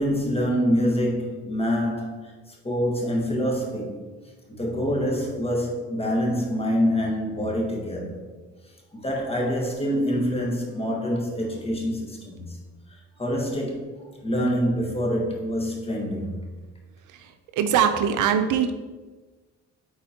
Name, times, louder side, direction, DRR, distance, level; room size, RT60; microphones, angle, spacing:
voice 1, 0.0-4.0 4.5-8.2 8.9-12.6 13.2-13.9 14.2-16.5, equal, 20° left, 1.5 m, -26 dB
voice 2, 17.6-18.7, right 8 dB, 85° right, 0.6 m, -21 dB
8.7 x 4.3 x 2.9 m
cardioid pair, 90°, 30 cm